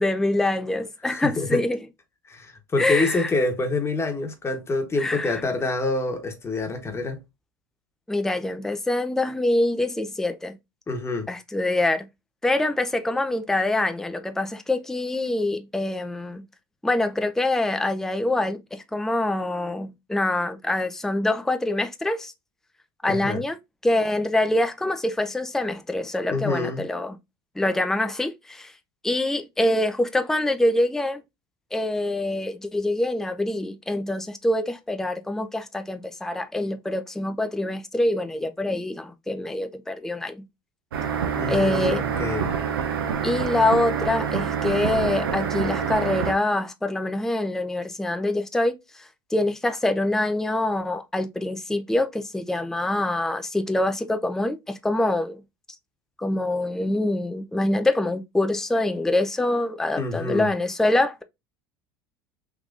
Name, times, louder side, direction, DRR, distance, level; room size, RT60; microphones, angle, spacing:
voice 1, 0.0-1.8 2.8-3.3 5.0-5.4 8.1-10.5 11.3-12.0 12.4-16.4 16.8-22.3 23.0-23.6 23.8-27.2 27.6-28.7 29.0-31.2 31.7-40.4 41.5-42.0 43.2-55.4 56.2-61.2, left 1 dB, 5° left, 0.5 m, -25 dB
voice 2, 1.1-1.6 2.3-7.2 10.9-11.3 23.1-23.4 26.3-26.8 41.3-42.5 60.0-60.5, left 3 dB, 20° left, 1.0 m, -27 dB
sound 1, 40.9-46.3, right 7 dB, 85° right, 0.7 m, -26 dB
3.6 x 2.9 x 2.4 m
hypercardioid pair, 80°, 12 cm